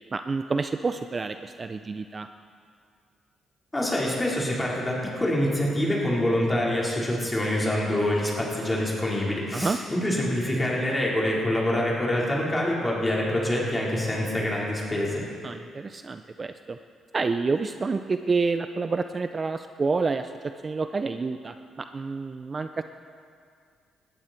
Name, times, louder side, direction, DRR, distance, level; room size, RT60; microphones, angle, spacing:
voice 1, 0.1-2.3 9.5-9.8 15.4-16.8 17.1-22.8, right 4 dB, 35° right, 9 dB, 0.5 m, -28 dB
voice 2, 3.7-15.2, left 1 dB, 15° left, -4 dB, 4.4 m, -26 dB
19.5 x 14.0 x 4.5 m, 2.3 s
cardioid pair, 90°, 0 cm